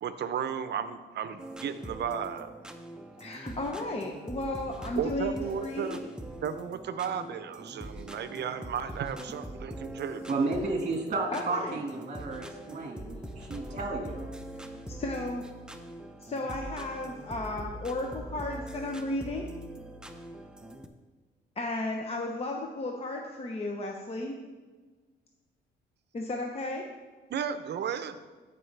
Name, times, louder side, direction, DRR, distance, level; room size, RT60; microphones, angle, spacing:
voice 1, 0.0-2.5 5.0-6.0 6.4-10.3 27.3-28.2, right 7 dB, 60° right, 11 dB, 0.6 m, -34 dB
sound 1, 1.4-20.9, right 1 dB, 5° right, 0.7 m, -43 dB
voice 2, 3.2-6.1 11.3-11.8 13.2-14.1 15.0-15.5 16.2-19.4 21.6-24.4 26.1-26.9, left 2 dB, 30° left, 1 dB, 0.8 m, -34 dB
voice 3, 10.3-14.3, right 3 dB, 40° right, 2 dB, 1.6 m, -32 dB
13.5 x 5.4 x 3.3 m, 1.3 s
cardioid pair, 90°, 20 cm